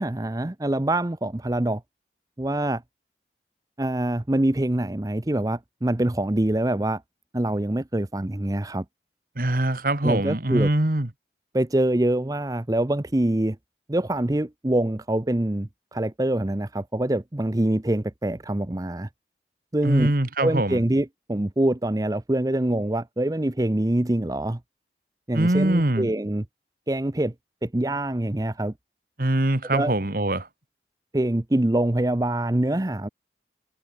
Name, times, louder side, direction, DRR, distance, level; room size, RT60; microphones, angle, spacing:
voice 1, 0.0-1.8 2.4-2.8 3.8-7.0 7.3-8.8 10.0-10.7 11.5-13.6 13.9-19.1 19.7-20.1 20.4-24.6 25.3-26.4 26.9-27.3 27.6-28.7 29.7-29.9 31.1-33.1, right 1 dB, 20° right, 0.6 m, -25 dB
voice 2, 9.4-11.1 19.8-20.8 25.3-26.1 29.2-30.5, right 1 dB, 50° right, 1.6 m, -23 dB
head